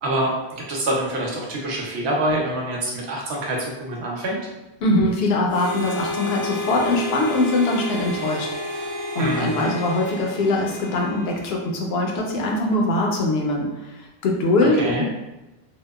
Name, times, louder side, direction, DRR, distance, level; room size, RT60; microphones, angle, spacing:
voice 1, 0.0-4.4 9.2-9.7 14.7-15.0, right 1 dB, 80° right, -2 dB, 0.9 m, -26 dB
voice 2, 4.8-8.9 9.1-15.0, left 2 dB, 70° left, -1 dB, 0.8 m, -22 dB
Harmonica, 5.5-11.9, equal, 40° right, 0.4 m, -31 dB
2.8 x 2.1 x 2.2 m, 1.0 s
omnidirectional pair, 1.1 m